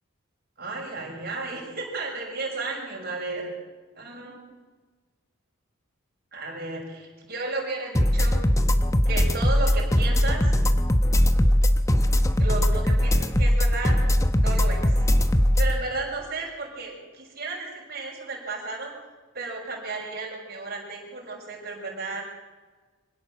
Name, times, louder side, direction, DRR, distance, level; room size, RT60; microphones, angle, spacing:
voice 1, 0.6-3.5 4.0-4.4 6.3-8.4 9.0-10.5 12.4-14.0 14.3-14.9 15.6-18.9 19.3-22.2, right 3 dB, 45° right, -1 dB, 6.5 m, -33 dB
sound 1, 7.9-15.7, equal, 15° left, 1.0 m, -20 dB
25.0 x 17.0 x 7.6 m, 1.4 s
head